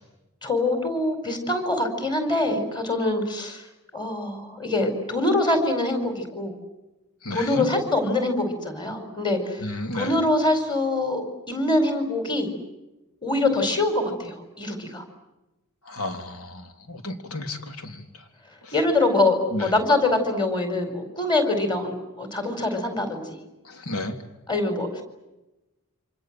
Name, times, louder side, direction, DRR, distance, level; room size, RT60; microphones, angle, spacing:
voice 1, 0.4-3.7 3.9-6.6 7.3-12.5 13.2-15.0 18.7-23.4 24.5-25.0, left 2 dB, 20° left, 6 dB, 4.9 m, -24 dB
voice 2, 7.2-7.7 9.6-10.2 15.8-18.3 18.6-18.7 19.5-19.7 23.6-24.2, left 2 dB, 85° left, 5 dB, 3.4 m, -33 dB
28.5 x 26.0 x 7.7 m, 1.0 s
head